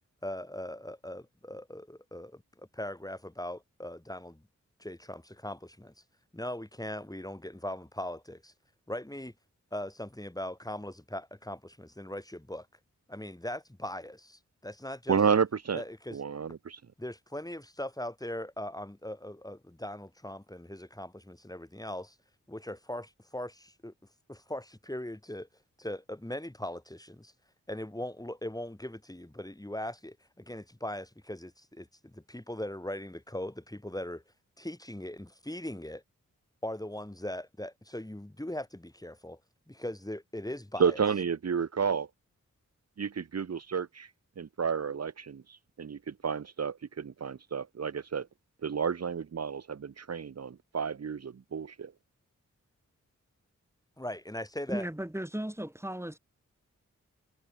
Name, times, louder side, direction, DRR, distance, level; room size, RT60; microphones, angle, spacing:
voice 1, 0.2-4.4 4.8-5.9 6.3-8.5 8.9-9.3 9.7-12.7 13.1-15.2 15.7-16.2 17.0-22.2 22.5-23.9 24.3-25.5 25.8-27.3 27.7-34.2 34.6-36.0 36.6-39.4 39.7-41.0 54.0-54.9, left 1 dB, 10° left, 3.6 m, -40 dB
voice 2, 15.1-15.8 16.1-16.8 40.8-42.1 43.0-44.1 44.4-48.3 48.6-51.9, right 6 dB, 55° right, 1.0 m, -31 dB
voice 3, 54.7-56.2, right 1 dB, 10° right, 5.0 m, -36 dB
cardioid pair, 50°, 31 cm